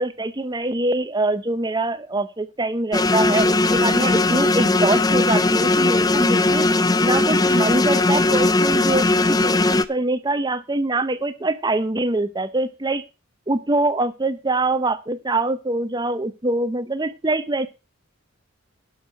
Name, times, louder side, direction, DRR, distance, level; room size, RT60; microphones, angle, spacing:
voice 1, 0.0-6.7 7.0-13.0 13.5-17.7, right 2 dB, 20° right, 12 dB, 0.8 m, -24 dB
sound 1, 2.9-9.8, left 2 dB, 20° left, 0.6 m, -18 dB
11.5 x 6.5 x 6.3 m, 0.29 s
head